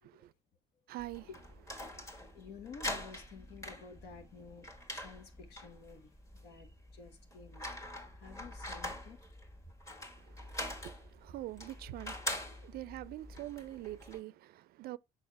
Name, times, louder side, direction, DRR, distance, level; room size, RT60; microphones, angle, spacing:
voice 1, 0.9-1.4 10.8-12.2 12.6-15.0, right 16 dB, 65° right, 0.4 m, -44 dB
sound 1, 1.0-14.2, left 1 dB, 20° left, 1.6 m, -44 dB
voice 2, 2.0-6.1 6.4-9.2, left 5 dB, 75° left, 1.2 m, -52 dB
6.4 x 5.2 x 3.4 m
cardioid pair, 110°, 17 cm